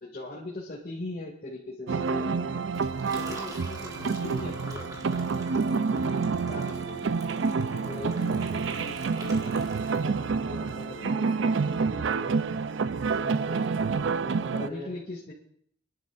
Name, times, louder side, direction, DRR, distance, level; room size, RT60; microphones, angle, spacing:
voice 1, 0.0-2.5 4.4-4.5 6.5-7.2 10.9-11.1 14.5-15.3, left 2 dB, 50° left, -4 dB, 2.3 m, -39 dB
sound 1, 1.9-14.7, right 5 dB, 85° right, 0.4 m, -28 dB
Liquid, 2.7-10.4, right 1 dB, 20° right, 1.8 m, -46 dB
voice 2, 3.1-5.2 7.7-9.5 9.9-14.9, left 2 dB, 45° right, -3 dB, 5.8 m, -43 dB
27.5 x 11.0 x 2.5 m, 0.64 s
head